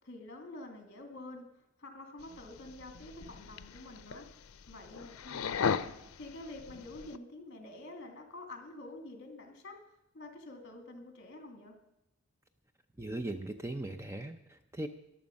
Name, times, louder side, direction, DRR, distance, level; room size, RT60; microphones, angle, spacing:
voice 1, 0.0-4.3 4.7-5.8 6.2-9.8 10.1-11.7, left 2 dB, 50° left, 4 dB, 2.6 m, -48 dB
sound 1, 2.2-7.2, left 6 dB, 85° left, 0.5 m, -38 dB
voice 2, 13.0-14.9, right 1 dB, 15° right, 7 dB, 0.5 m, -39 dB
14.5 x 11.5 x 5.3 m, 0.86 s
head